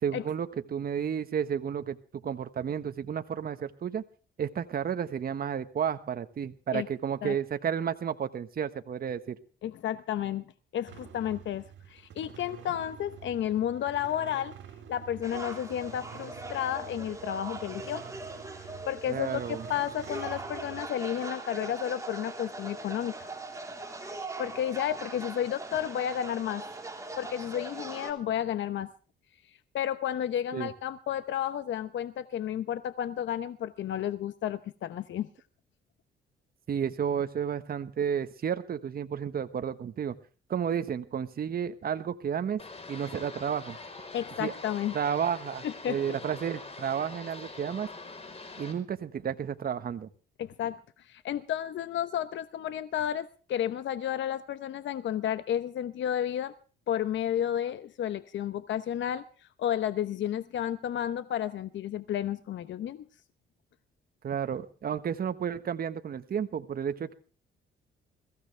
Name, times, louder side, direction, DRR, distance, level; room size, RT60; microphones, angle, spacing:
voice 1, 0.0-2.0 2.2-4.0 4.4-9.4 19.1-19.6 30.5-30.7 36.7-40.1 40.5-42.6 42.9-43.8 44.4-44.5 44.9-47.9 48.6-50.1 64.2-67.1, right 8 dB, 50° right, 10 dB, 1.3 m, -32 dB
voice 2, 9.6-14.5 14.9-18.0 18.9-23.3 24.4-26.6 27.2-28.9 29.7-35.3 44.1-44.9 45.6-46.0 50.4-56.5 56.9-59.2 59.6-63.0, left 10 dB, 70° left, 12 dB, 1.0 m, -32 dB
sound 1, 10.9-20.8, right 8 dB, 65° right, 3.7 m, -48 dB
sound 2, 15.2-28.1, right 2 dB, 15° right, 3.8 m, -41 dB
sound 3, 42.6-48.7, left 3 dB, 30° left, 4.4 m, -44 dB
22.0 x 15.5 x 3.4 m, 0.39 s
cardioid pair, 90°, 20 cm